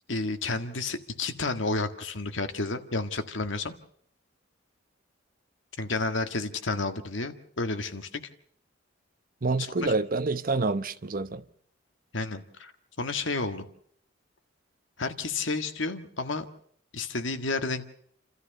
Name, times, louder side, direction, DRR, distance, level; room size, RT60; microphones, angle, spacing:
voice 1, 0.1-3.7 5.8-8.2 9.6-9.9 12.1-12.7 13.0-13.6 15.0-16.5 16.9-17.9, left 3 dB, 75° left, 1.7 m, -31 dB
voice 2, 9.4-11.4, right 3 dB, 45° right, 0.9 m, -27 dB
29.5 x 13.5 x 6.6 m
head